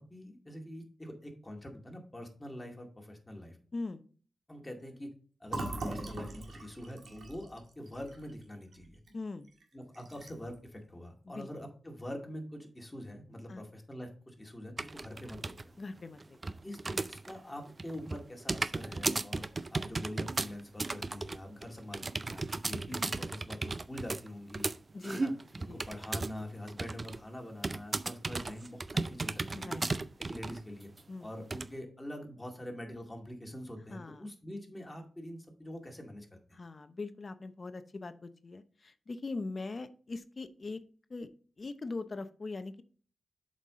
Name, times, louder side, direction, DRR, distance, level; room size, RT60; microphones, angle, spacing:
voice 1, 0.0-3.6 4.5-5.1 5.4-9.0 9.7-15.8 16.6-24.7 25.1-25.3 25.6-29.8 30.2-30.9 31.2-36.4, left 1 dB, 20° left, 2 dB, 2.1 m, -44 dB
Fill (with liquid), 5.5-9.1 9.5-9.6 9.9-10.5, right 2 dB, 75° right, 1.7 m, -41 dB
voice 2, 9.1-9.5 11.3-11.5 13.5-13.6 15.8-16.6 24.9-25.2 25.7-25.8 29.4-30.1 31.1-31.3 33.9-34.3 36.5-40.8 41.1-41.3 41.6-42.8, left 3 dB, 50° left, 11 dB, 0.7 m, -41 dB
sound 1, 14.8-15.6 16.0-17.4 17.7-26.4 26.7-27.2 27.6-30.6 31.0-31.1 31.5-31.7, right 3 dB, 40° right, 0.4 m, -35 dB
7.3 x 5.4 x 3.7 m, 0.41 s
cardioid pair, 55°, 0 cm